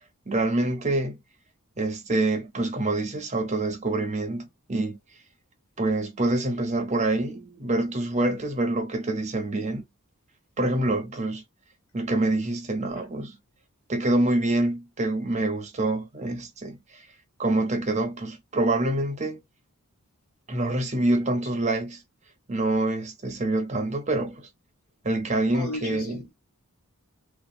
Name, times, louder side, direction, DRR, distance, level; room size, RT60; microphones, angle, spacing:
voice 1, 0.3-1.2 1.8-5.0 5.8-9.8 10.6-11.4 11.9-13.4 13.9-17.0 17.4-19.4 20.5-22.0 22.5-24.5 25.0-26.2, right 2 dB, 30° right, 0.7 m, -26 dB
voice 2, 25.5-26.3, left 2 dB, 70° left, 1.4 m, -35 dB
2.8 x 2.5 x 2.3 m
head